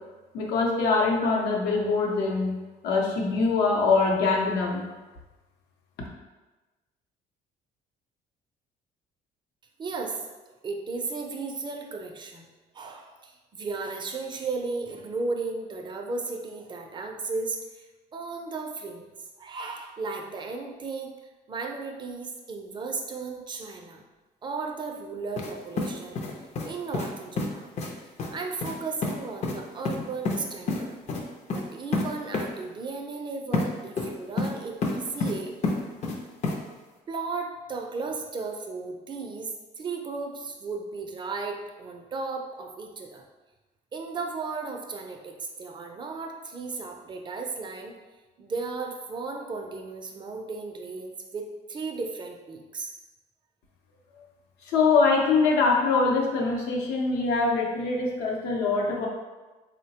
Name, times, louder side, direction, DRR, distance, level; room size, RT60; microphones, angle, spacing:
voice 1, 0.3-2.6 2.8-4.8 54.6-59.1, left 4 dB, 75° left, -1 dB, 0.7 m, -23 dB
voice 2, 9.8-10.2 10.6-12.5 12.7-17.9 18.1-19.1 19.4-21.1 21.5-24.0 24.4-26.2 26.6-27.7 28.3-30.9 31.5-35.5 37.1-39.5 39.8-43.2 43.9-47.9 48.4-52.9, right 4 dB, 25° right, 2 dB, 0.4 m, -35 dB
sound 1, 25.4-25.5 25.8-26.7 26.9-27.1 27.4-27.5 27.8-27.9 28.2-28.3 28.6-28.7 29.0-29.1 29.4-29.6 29.9-30.4 30.7-30.8 31.1-31.2 31.5-31.6 31.9-32.0 32.3-32.4 33.5-33.7 34.0-34.5 34.8-35.3 35.6-36.2 36.4-36.6, left 3 dB, 40° left, 0.5 m, -28 dB
3.8 x 2.1 x 2.8 m, 1.2 s
cardioid pair, 110°, 17 cm